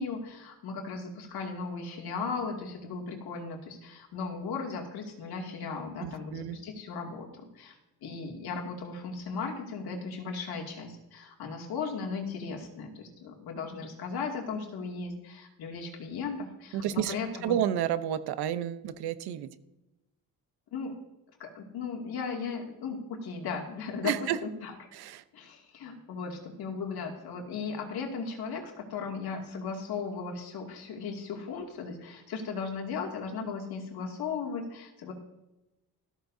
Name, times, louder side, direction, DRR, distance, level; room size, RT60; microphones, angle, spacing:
voice 1, 0.0-7.7 8.0-17.5 20.7-20.9 21.4-24.1 24.4-24.7 25.3-35.1, left 5 dB, 75° left, 1 dB, 2.5 m, -36 dB
voice 2, 6.0-6.6 16.7-17.2 17.4-19.5 24.0-24.4 24.9-25.2, right 10 dB, 90° right, 12 dB, 0.9 m, -30 dB
14.5 x 14.0 x 2.7 m, 0.97 s
cardioid pair, 110°, 37 cm